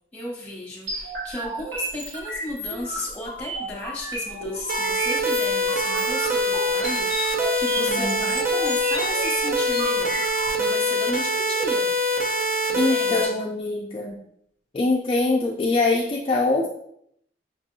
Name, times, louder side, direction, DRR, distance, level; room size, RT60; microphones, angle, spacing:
voice 1, 0.1-10.2 10.6-11.9 12.7-13.4, left 1 dB, 10° left, -4 dB, 1.2 m, -34 dB
sound 1, 0.9-10.5, right 1 dB, 75° right, 1.2 m, -33 dB
sound 2, 4.7-13.2, equal, 55° right, 0.7 m, -24 dB
voice 2, 7.8-8.3 12.8-14.2 14.7-16.7, left 3 dB, 30° left, -2 dB, 0.4 m, -23 dB
5.9 x 2.6 x 2.7 m, 0.71 s
head